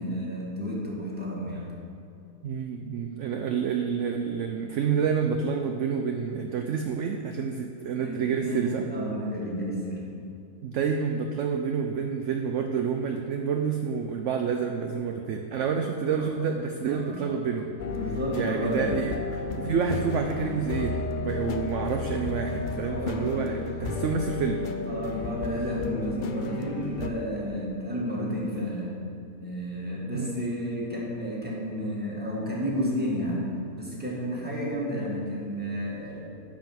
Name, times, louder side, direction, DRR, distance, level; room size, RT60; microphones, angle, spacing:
voice 1, 0.0-1.7 8.0-10.1 16.1-16.3 16.9-17.4 17.8-19.0 22.8-23.6 24.8-29.0 29.4-36.2, equal, 5° right, -5 dB, 2.0 m, -31 dB
voice 2, 2.4-8.9 10.6-17.7 18.3-24.6 30.1-30.3 34.9-35.1, right 6 dB, 65° right, 4 dB, 0.8 m, -29 dB
sound 1, 17.8-27.1, left 4 dB, 70° left, 0.4 m, -33 dB
10.5 x 5.3 x 7.6 m, 2.6 s
omnidirectional pair, 1.6 m